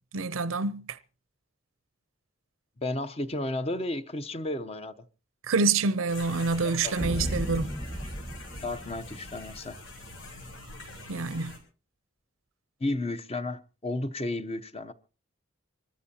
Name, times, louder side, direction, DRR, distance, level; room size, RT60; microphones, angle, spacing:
voice 1, 0.1-1.0 5.5-7.8 11.1-11.6, right 4 dB, 90° right, 0.6 m, -27 dB
voice 2, 2.8-4.9 6.8-7.0 8.6-9.8 12.8-14.9, left 2 dB, 30° left, 0.7 m, -32 dB
sound 1, 6.1-11.6, left 1 dB, 80° left, 5.7 m, -44 dB
sound 2, 7.0-9.6, equal, 15° left, 1.3 m, -35 dB
25.5 x 13.5 x 2.8 m
head